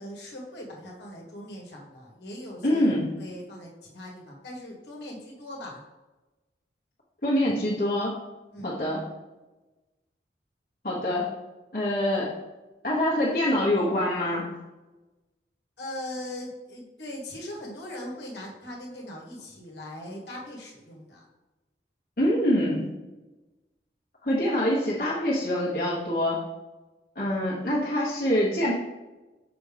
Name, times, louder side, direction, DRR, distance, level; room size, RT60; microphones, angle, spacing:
voice 1, 0.0-5.8 8.5-8.7 15.8-21.2 27.3-27.4, left 1 dB, 70° left, -2 dB, 1.5 m, -40 dB
voice 2, 2.6-3.1 7.2-8.2 8.6-9.0 10.8-11.3 11.7-12.3 12.8-14.5 22.2-22.9 24.2-26.4 27.1-28.7, left 1 dB, 55° left, -7 dB, 1.2 m, -25 dB
6.0 x 5.0 x 3.4 m, 1.1 s
head